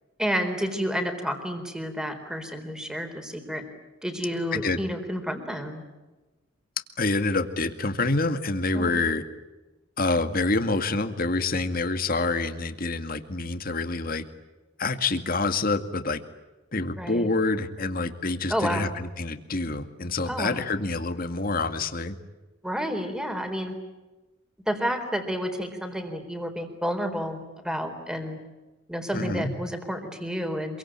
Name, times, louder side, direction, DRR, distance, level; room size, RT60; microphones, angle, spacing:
voice 1, 0.2-3.6 4.0-5.8 8.7-8.9 17.0-17.3 18.5-18.9 20.3-20.6 22.6-23.8 24.7-28.4 28.9-30.8, equal, 5° right, 6 dB, 4.0 m, -30 dB
voice 2, 7.0-9.2 10.0-14.2 14.8-16.2 16.7-22.1 29.1-29.5, left 3 dB, 45° left, 8 dB, 2.1 m, -27 dB
27.0 x 24.0 x 8.9 m, 1.1 s
head